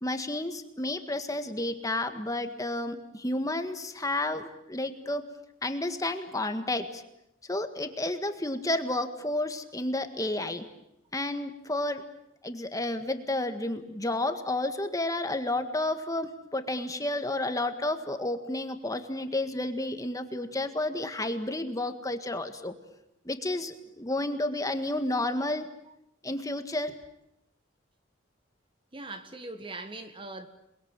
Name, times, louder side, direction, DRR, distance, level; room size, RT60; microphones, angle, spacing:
voice 1, 0.0-5.2 5.6-7.0 7.5-10.6 11.1-12.0 12.4-22.7 23.3-25.7 26.2-26.9, left 2 dB, 15° left, 1.8 m, -31 dB
voice 2, 28.9-30.5, right 2 dB, 25° right, 1.5 m, -40 dB
28.5 x 21.5 x 9.0 m
head